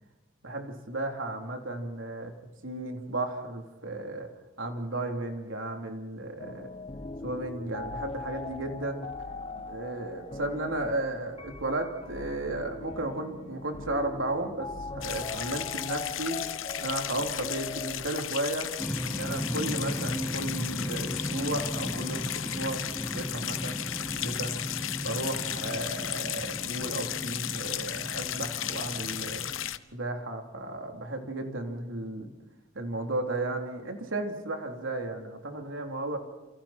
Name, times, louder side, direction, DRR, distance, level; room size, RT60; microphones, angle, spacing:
voice 1, 0.4-2.3 2.6-4.3 4.6-6.7 7.2-9.1 9.6-16.4 16.8-18.7 19.1-22.8 23.1-23.8 24.2-24.5 25.0-29.4 29.9-32.3 32.7-36.2, right 2 dB, 80° right, 3 dB, 3.7 m, -34 dB
sound 1, 6.4-18.2, left 3 dB, 30° left, 0.9 m, -40 dB
sound 2, 15.0-29.8, left 11 dB, 85° left, 1.1 m, -35 dB
sound 3, 18.8-29.7, equal, 5° left, 1.3 m, -36 dB
29.5 x 28.5 x 4.5 m, 1.1 s
head